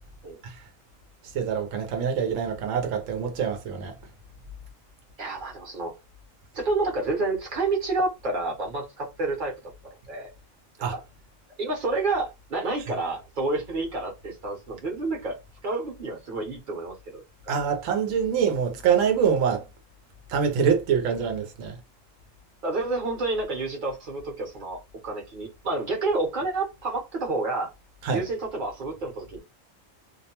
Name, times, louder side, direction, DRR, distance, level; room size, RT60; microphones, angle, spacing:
voice 1, 1.3-4.0 10.8-11.0 17.5-19.7 20.3-21.8 28.0-28.2, right 7 dB, 80° right, 1.0 m, -25 dB
voice 2, 5.2-5.9 6.5-9.5 10.1-10.3 10.9-11.0 11.6-15.4 15.6-17.5 22.6-27.7 28.1-29.4, right 3 dB, 45° right, 0.9 m, -29 dB
2.5 x 2.1 x 2.8 m
omnidirectional pair, 1.3 m